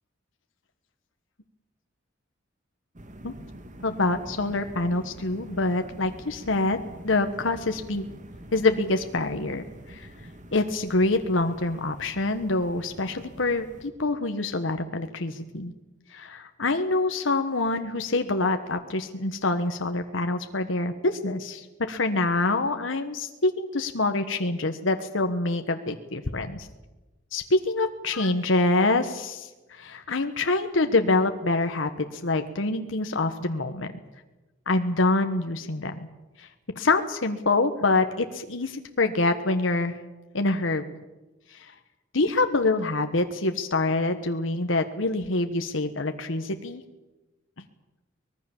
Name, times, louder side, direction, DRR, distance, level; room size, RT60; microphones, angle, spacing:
sound 1, 3.0-13.9, right 1 dB, 40° right, 2.0 m, -46 dB
voice 1, 3.8-6.8 7.0-8.1 8.5-10.1 10.5-15.7 16.1-26.7 27.3-33.9 34.7-36.0 36.4-40.0 40.3-40.8 41.5-41.7 42.1-46.8, left 2 dB, 90° left, 7 dB, 1.3 m, -26 dB
24.5 x 19.5 x 7.2 m, 1.1 s
head